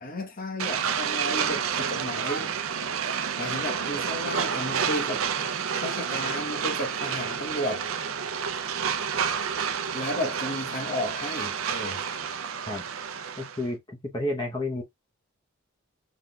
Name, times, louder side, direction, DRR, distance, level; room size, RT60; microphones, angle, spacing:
voice 1, 0.0-2.5 3.4-5.3 5.7-7.9 9.9-12.0, left 1 dB, 40° left, 1.1 m, -33 dB
sound 1, 0.6-13.6, right 7 dB, 85° right, 0.6 m, -30 dB
voice 2, 13.4-14.8, left 1 dB, 20° left, 0.9 m, -31 dB
5.9 x 3.5 x 2.3 m
head